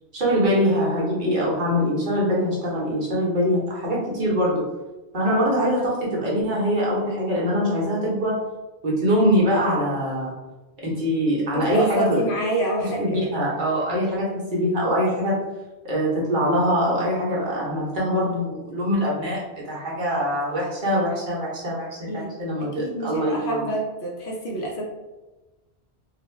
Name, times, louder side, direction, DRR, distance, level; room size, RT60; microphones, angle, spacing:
voice 1, 0.1-4.7 5.1-8.5 8.8-10.3 10.8-12.3 12.8-15.4 15.8-23.7, equal, 50° right, -5 dB, 0.9 m, -23 dB
voice 2, 11.5-13.2 22.1-22.3 22.6-24.8, right 1 dB, 60° left, -2 dB, 0.7 m, -27 dB
2.4 x 2.1 x 3.1 m, 1.1 s
omnidirectional pair, 1.1 m